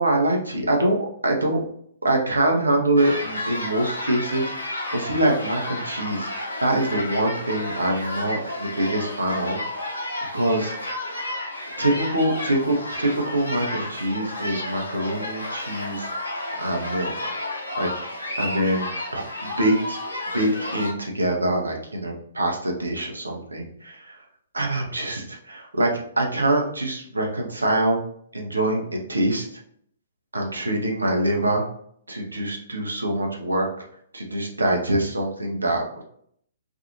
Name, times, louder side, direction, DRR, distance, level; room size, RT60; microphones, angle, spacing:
voice 1, 0.0-1.6 2.0-9.6 10.2-10.7 11.8-16.1 16.6-17.3 17.8-20.0 20.3-24.2 24.5-28.0 28.3-29.5 30.3-31.6 32.1-33.7 34.1-36.0, right 1 dB, 75° right, 0 dB, 0.6 m, -24 dB
sound 1, 3.0-20.9, left 1 dB, 75° left, 0.6 m, -32 dB
2.6 x 2.4 x 2.8 m, 0.67 s
figure-of-eight pair, 120°, 0 cm